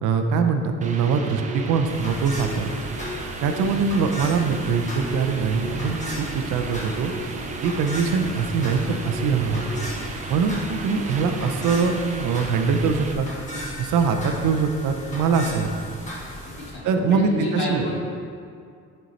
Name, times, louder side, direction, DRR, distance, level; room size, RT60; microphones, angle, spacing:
voice 1, 0.0-2.7 3.4-7.1 7.6-9.7 10.3-13.3 13.8-15.7 16.8-17.9, right 5 dB, 90° right, 5 dB, 0.7 m, -23 dB
sound 1, 0.8-13.1, right 2 dB, 25° right, 0.4 m, -34 dB
sound 2, 1.9-16.7, equal, 25° left, 1.5 m, -36 dB
voice 2, 17.1-18.0, left 1 dB, 40° left, -5 dB, 1.9 m, -29 dB
9.4 x 4.5 x 4.1 m, 2.3 s
cardioid pair, 175°, 29 cm